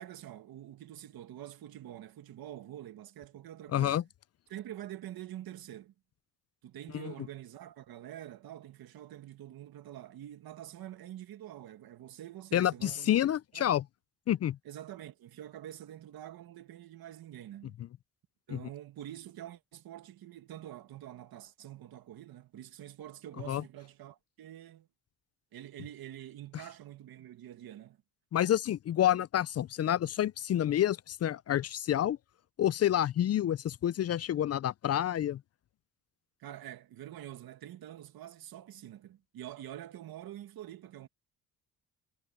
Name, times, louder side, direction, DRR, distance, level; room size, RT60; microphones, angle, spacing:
voice 1, 0.0-4.0 4.5-5.9 6.6-13.1 13.5-13.7 14.6-17.8 18.5-24.9 25.5-28.0 36.4-41.1, right 12 dB, 75° right, 2.1 m, -46 dB
voice 2, 3.7-4.0 6.9-7.0 12.5-13.8 14.3-14.6 18.5-18.6 23.5-23.6 28.3-32.2 32.6-35.4, left 11 dB, 45° left, 0.4 m, -28 dB
cardioid pair, 100°, 36 cm